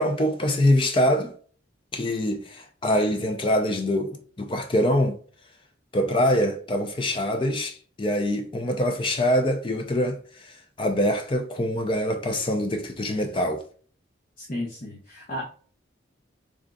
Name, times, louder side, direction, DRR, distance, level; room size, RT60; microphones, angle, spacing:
voice 1, 0.0-1.3 1.9-5.2 5.9-13.6, equal, 25° left, 0.4 m, -24 dB
voice 2, 14.4-15.5, left 1 dB, 45° left, 0.9 m, -33 dB
3.7 x 3.6 x 2.2 m
head